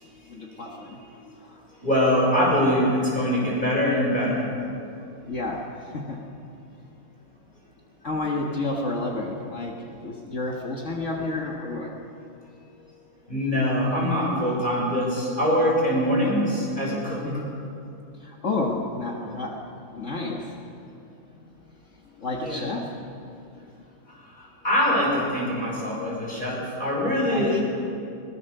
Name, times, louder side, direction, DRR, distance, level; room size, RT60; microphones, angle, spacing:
voice 1, 0.3-1.0 1.4-1.6 5.2-6.2 8.0-12.0 17.2-17.5 18.2-19.6 19.9-20.5 22.2-23.0 27.3-27.6, left 2 dB, 55° left, -1 dB, 1.8 m, -30 dB
voice 2, 1.8-4.5 13.3-17.2 22.4-22.6 24.1-27.6, equal, 30° left, -4 dB, 6.1 m, -23 dB
23.0 x 17.0 x 6.6 m, 2.5 s
omnidirectional pair, 1.6 m